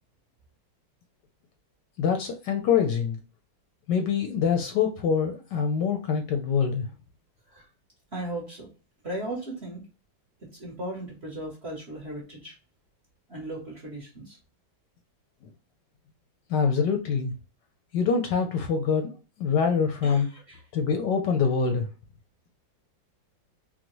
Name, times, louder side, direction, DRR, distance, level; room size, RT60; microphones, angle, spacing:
voice 1, 2.0-3.2 3.9-6.9 16.5-17.3 17.9-19.1 19.4-20.3 20.7-21.9, left 6 dB, 70° left, 4 dB, 1.1 m, -25 dB
voice 2, 8.1-8.7 9.0-9.8 10.4-12.6 13.3-14.4 20.0-20.6, right 1 dB, 45° right, -3 dB, 0.9 m, -37 dB
3.7 x 2.1 x 2.9 m, 0.34 s
omnidirectional pair, 2.2 m